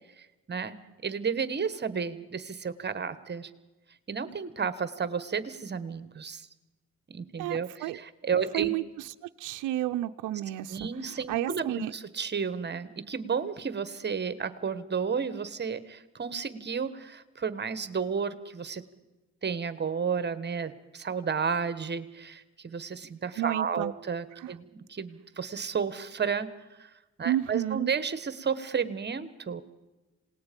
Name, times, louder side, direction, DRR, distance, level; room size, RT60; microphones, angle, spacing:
voice 1, 0.2-3.5 4.1-6.5 7.1-8.7 10.7-18.8 19.4-26.5 26.8-26.9 27.2-29.6, right 6 dB, 35° right, 13 dB, 1.3 m, -32 dB
voice 2, 7.4-8.0 8.5-11.9 23.4-23.9 24.4-24.5 27.2-27.9, right 14 dB, 85° right, 7 dB, 0.6 m, -31 dB
27.0 x 19.0 x 5.3 m, 1.1 s
cardioid pair, 90°, 30 cm